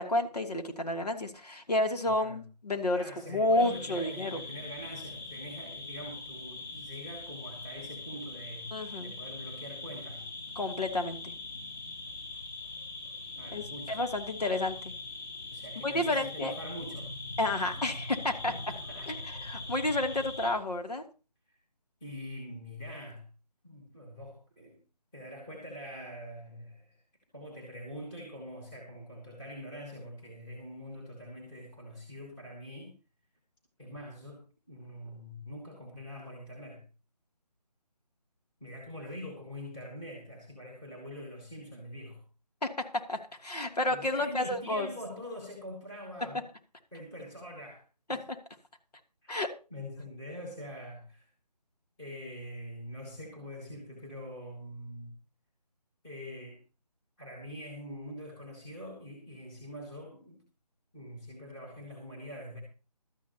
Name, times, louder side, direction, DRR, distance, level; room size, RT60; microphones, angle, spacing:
voice 1, 0.0-4.4 8.7-9.1 10.6-11.3 13.5-14.8 15.8-16.5 17.4-18.5 19.1-19.2 19.4-21.0 42.6-44.9 48.1-48.4 49.3-49.5, left 1 dB, 70° left, 4 dB, 2.9 m, -30 dB
voice 2, 2.0-2.4 2.9-10.3 13.4-14.0 15.5-17.1 17.6-17.7 18.5-19.1 21.5-21.6 22.0-23.3 23.6-24.8 25.1-27.0 27.3-33.0 33.8-36.8 38.6-42.2 43.9-46.5 46.9-48.2 49.2-49.4 49.7-51.3 52.0-55.2 56.0-56.6 57.2-60.4 60.9-62.6, equal, 5° left, -4 dB, 1.7 m, -44 dB
sound 1, 3.6-20.5, left 3 dB, 35° left, 5.0 m, -42 dB
16.5 x 13.0 x 3.0 m, 0.33 s
figure-of-eight pair, 175°, 21 cm